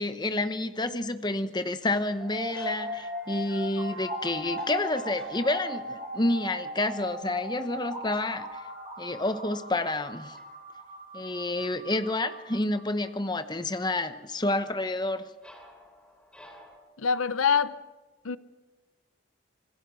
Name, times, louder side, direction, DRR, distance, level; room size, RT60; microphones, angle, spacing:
voice 1, 0.0-8.6 9.0-10.4 11.1-15.2, left 2 dB, 20° left, 0.9 m, -29 dB
sound 1, 1.8-6.6 7.6-10.1 10.4-10.7 14.7-16.8, equal, 5° left, 3.8 m, -56 dB
sound 2, 2.2-13.1, equal, 25° right, 5.1 m, -38 dB
voice 2, 17.0-17.8 18.2-18.4, left 6 dB, 85° left, 0.8 m, -24 dB
26.5 x 20.0 x 6.2 m
head